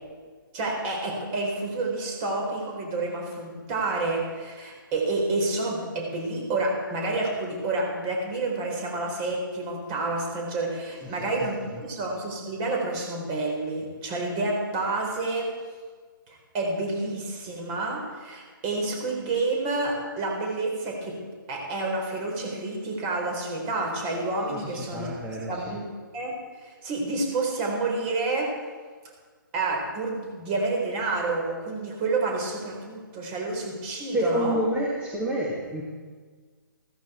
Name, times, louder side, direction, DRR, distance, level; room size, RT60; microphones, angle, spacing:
voice 1, 0.5-15.5 16.3-21.2 21.5-25.1 25.5-25.8 26.1-26.3 26.6-28.5 29.5-34.6, right 2 dB, 25° right, 0 dB, 4.5 m, -29 dB
voice 2, 11.0-11.8 24.4-25.8 34.1-35.8, equal, 10° right, -6 dB, 2.1 m, -29 dB
15.5 x 14.5 x 4.5 m, 1.5 s
figure-of-eight pair, 140°, 12 cm